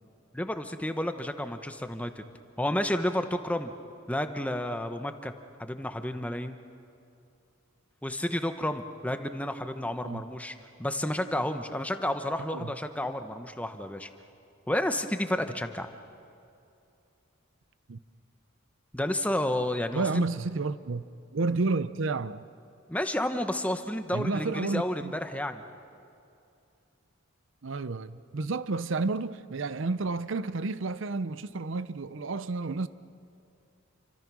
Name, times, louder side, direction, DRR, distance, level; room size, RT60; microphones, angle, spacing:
voice 1, 0.3-2.2 2.6-3.7 4.1-5.3 5.6-6.6 8.0-14.1 14.7-15.9 18.9-20.2 22.9-25.6, left 1 dB, 5° left, 0.9 m, -31 dB
voice 2, 19.9-21.0 21.3-22.5 24.1-25.1 27.6-32.9, right 3 dB, 65° right, 0.6 m, -31 dB
29.0 x 24.5 x 6.2 m
head